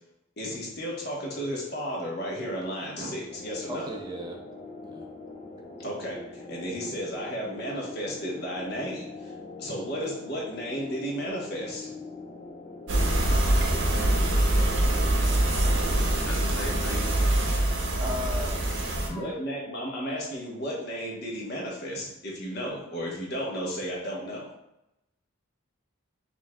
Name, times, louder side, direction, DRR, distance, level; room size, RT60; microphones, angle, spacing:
voice 1, 0.4-3.9 5.8-9.3 9.6-11.9 19.1-24.5, equal, 50° left, -3 dB, 1.1 m, -33 dB
sound 1, 3.3-17.2, left 2 dB, 30° left, 0.5 m, -43 dB
voice 2, 3.6-4.4 4.8-5.1 18.0-18.6, left 1 dB, 20° right, 0 dB, 0.4 m, -36 dB
sound 2, 12.9-19.1, right 1 dB, 60° right, 0.7 m, -24 dB
voice 3, 15.3-17.1 18.9-19.4, left 3 dB, 85° left, 3 dB, 0.5 m, -43 dB
5.4 x 2.6 x 2.3 m, 0.88 s
head